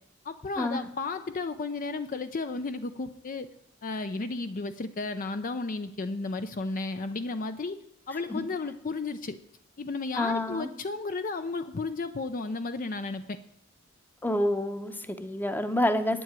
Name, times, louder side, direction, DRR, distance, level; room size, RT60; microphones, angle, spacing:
voice 1, 0.2-3.5 3.8-7.8 8.1-9.4 9.8-13.4, left 3 dB, 40° left, 9 dB, 0.5 m, -33 dB
voice 2, 10.1-10.7 14.2-16.2, left 1 dB, 10° left, 9 dB, 0.8 m, -28 dB
9.2 x 7.7 x 8.9 m, 0.73 s
head